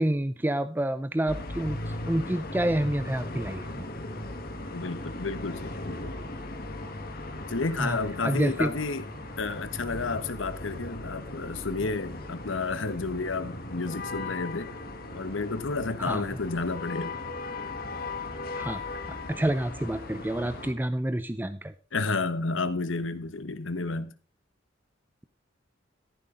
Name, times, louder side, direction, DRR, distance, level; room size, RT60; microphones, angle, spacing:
voice 1, 0.0-3.8 7.8-8.0 8.2-8.7 16.1-16.2 18.6-19.0 19.3-21.7, right 1 dB, 10° right, 0.5 m, -28 dB
sound 1, 1.3-20.7, left 2 dB, 50° left, 1.7 m, -38 dB
voice 2, 4.7-6.2 7.5-9.0 9.4-14.7 15.1-17.2 21.9-24.1, left 3 dB, 80° left, 1.2 m, -31 dB
14.0 x 11.5 x 3.8 m
head